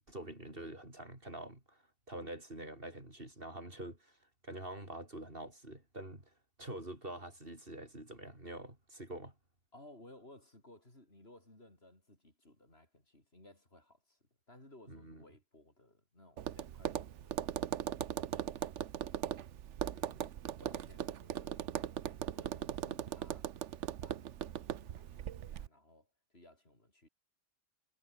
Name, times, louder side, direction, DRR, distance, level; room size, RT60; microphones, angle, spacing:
voice 1, 0.0-4.2 4.4-9.3 14.9-15.2 19.9-20.2 20.6-20.7, right 1 dB, 50° right, 6.2 m, -46 dB
voice 2, 9.7-14.2 14.5-18.7 20.1-21.7 22.3-23.5 24.0-27.1, left 1 dB, 55° left, 6.3 m, -60 dB
Tap, 16.4-25.7, right 10 dB, 75° right, 1.1 m, -39 dB
omnidirectional pair, 1.3 m